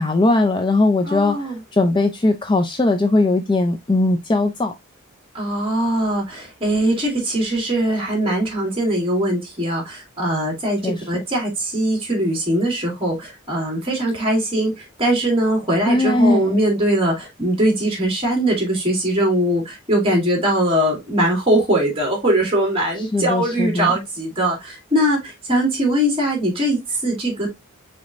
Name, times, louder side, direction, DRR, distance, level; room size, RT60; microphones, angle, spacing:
voice 1, 0.0-1.4 1.7-4.7 10.8-11.0 15.9-16.6 23.1-23.9, left 2 dB, 20° left, 0.5 m, -19 dB
voice 2, 1.0-1.6 5.3-27.5, right 1 dB, 25° right, 2.7 m, -21 dB
5.0 x 4.1 x 2.5 m
head